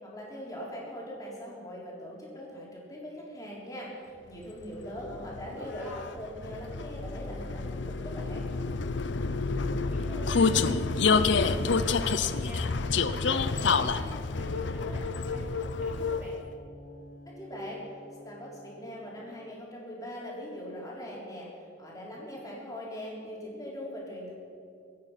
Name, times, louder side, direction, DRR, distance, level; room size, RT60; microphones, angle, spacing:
voice 1, 0.0-5.9 6.1-8.5 17.3-17.8 18.2-21.5 21.8-24.3, equal, 20° left, -4 dB, 4.0 m, -41 dB
Vehicle, 4.6-16.5, left 4 dB, 70° left, 0.7 m, -28 dB
voice 2, 4.9-6.0 9.4-16.4, equal, 10° right, -7 dB, 4.8 m, -46 dB
sound 1, 13.0-19.6, left 2 dB, 45° left, 1.2 m, -51 dB
24.0 x 9.5 x 5.8 m, 2.5 s
head